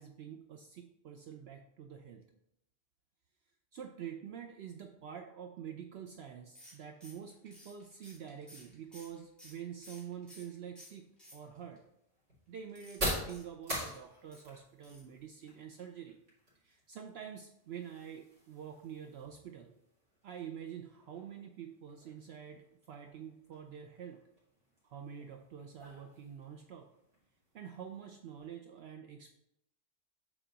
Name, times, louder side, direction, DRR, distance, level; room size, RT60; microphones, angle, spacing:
voice 1, 0.0-2.2 3.7-11.1 11.3-11.8 12.5-16.2 16.6-19.7 20.2-24.2 24.8-26.9 27.5-29.3, right 8 dB, 65° right, 4 dB, 0.7 m, -47 dB
sound 1, 6.6-10.5 10.8-11.8 12.7-14.4 14.8-15.1 15.4-15.5 15.8-15.9, left 1 dB, ahead, 2.3 m, -56 dB
sound 2, 10.9-28.5, equal, 50° right, 2.7 m, -46 dB
7.2 x 4.3 x 3.9 m, 0.81 s
omnidirectional pair, 1.3 m